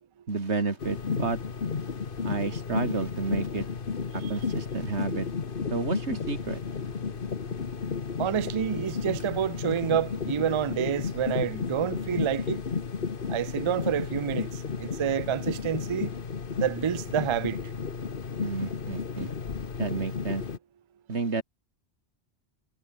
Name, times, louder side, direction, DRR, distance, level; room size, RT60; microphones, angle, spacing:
voice 1, 0.3-1.4 2.2-3.7 4.1-5.3 5.7-6.6 18.4-19.3 19.8-20.4 21.1-21.4, right 4 dB, 85° right, 2.8 m, -30 dB
sound 1, 0.8-20.6, left 5 dB, 55° left, 1.4 m, -33 dB
voice 2, 8.2-12.6 13.3-14.5 14.8-16.1 16.6-17.6, right 9 dB, 45° right, 0.4 m, -28 dB
omnidirectional pair, 1.1 m